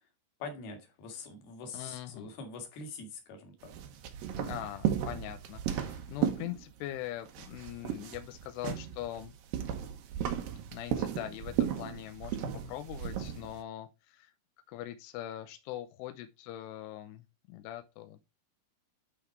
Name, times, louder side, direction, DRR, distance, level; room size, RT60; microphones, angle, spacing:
voice 1, 0.4-3.7, left 4 dB, 60° left, 3.4 m, -44 dB
voice 2, 1.7-2.3 4.4-9.3 10.7-14.3 14.7-18.2, left 13 dB, 85° left, 2.4 m, -42 dB
sound 1, 3.6-7.0 7.3-13.6, right 9 dB, 75° right, 2.1 m, -35 dB
11.5 x 3.9 x 4.5 m
omnidirectional pair, 5.5 m